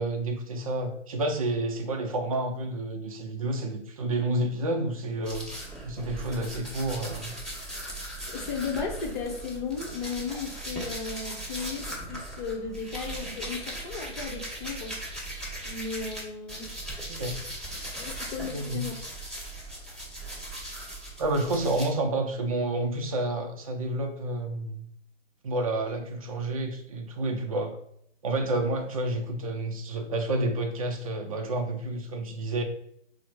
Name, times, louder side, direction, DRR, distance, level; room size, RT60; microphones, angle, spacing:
voice 1, 0.0-5.5 5.8-7.3 17.1-17.4 18.5-18.9 21.2-24.9 25.4-27.8 28.2-32.6, right 2 dB, 30° right, 4 dB, 0.4 m, -29 dB
sound 1, 5.2-16.2 16.5-21.9, right 1 dB, 5° left, 1.1 m, -38 dB
voice 2, 8.3-15.0 15.6-16.7 18.0-18.9, left 5 dB, 40° left, 3 dB, 0.8 m, -35 dB
4.3 x 2.1 x 4.4 m, 0.72 s
hypercardioid pair, 150°, 36 cm